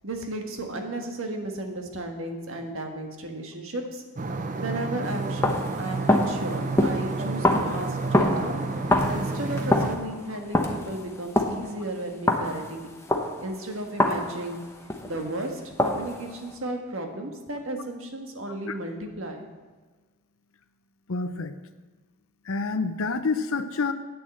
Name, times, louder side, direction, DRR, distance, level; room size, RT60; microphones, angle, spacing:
voice 1, 0.0-4.0 4.6-5.4 5.8-8.6 9.1-12.9 13.4-14.6 15.0-19.4, right 1 dB, 70° right, 3 dB, 1.6 m, -34 dB
sound 1, 4.2-10.0, right 3 dB, 35° right, 0.6 m, -30 dB
sound 2, 5.0-15.3 15.8-16.5, left 1 dB, 10° left, 0.9 m, -27 dB
voice 2, 21.1-21.6 22.5-23.9, left 4 dB, 70° left, 10 dB, 0.7 m, -28 dB
8.7 x 7.3 x 7.7 m, 1.3 s
head